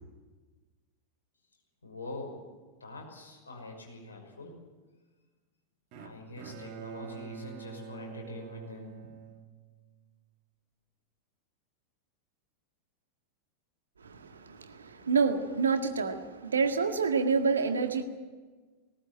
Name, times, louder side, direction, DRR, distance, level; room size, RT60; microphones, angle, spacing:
voice 1, 1.8-2.4 2.8-4.6 6.0-9.1, left 2 dB, 75° left, 1 dB, 5.8 m, -44 dB
Bowed string instrument, 5.9-10.1, right 7 dB, 40° right, 2.3 m, -46 dB
voice 2, 14.8-18.0, right 5 dB, 70° right, 7 dB, 1.8 m, -27 dB
19.0 x 18.0 x 8.9 m, 1.3 s
figure-of-eight pair, 90°, 0 cm